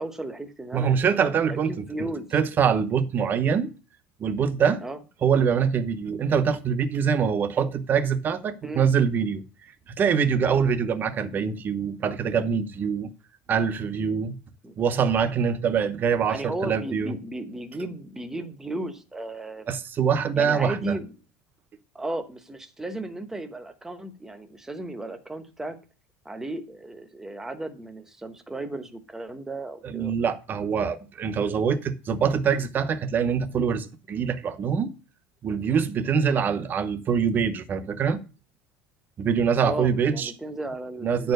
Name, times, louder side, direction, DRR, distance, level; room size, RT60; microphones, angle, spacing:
voice 1, 0.0-1.2 1.5-2.3 4.8-5.0 8.6-8.8 14.6-14.7 16.3-19.7 20.4-21.1 21.9-25.8 26.2-30.1 39.6-41.3, right 2 dB, 5° right, 1.0 m, -35 dB
voice 2, 0.7-1.9 2.3-3.7 4.2-4.8 5.2-9.4 9.9-13.1 13.5-14.4 14.8-17.1 19.7-21.0 29.8-34.9 35.4-38.2 39.2-40.3 41.0-41.3, right 6 dB, 30° right, 0.9 m, -24 dB
9.9 x 4.6 x 6.4 m
cardioid pair, 150°, 7 cm